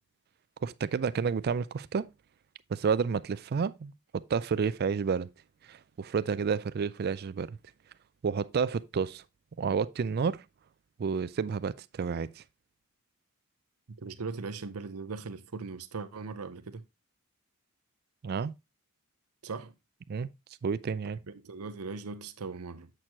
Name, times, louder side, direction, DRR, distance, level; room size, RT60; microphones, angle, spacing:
voice 1, 0.6-2.1 2.7-5.3 5.7-7.6 8.2-9.2 9.6-10.4 11.0-12.4 18.2-18.5 20.1-20.3 20.6-21.2, right 6 dB, 45° right, 0.3 m, -30 dB
voice 2, 13.9-16.9 19.4-19.7 21.3-22.9, right 4 dB, 85° right, 0.7 m, -39 dB
7.6 x 6.5 x 2.9 m
head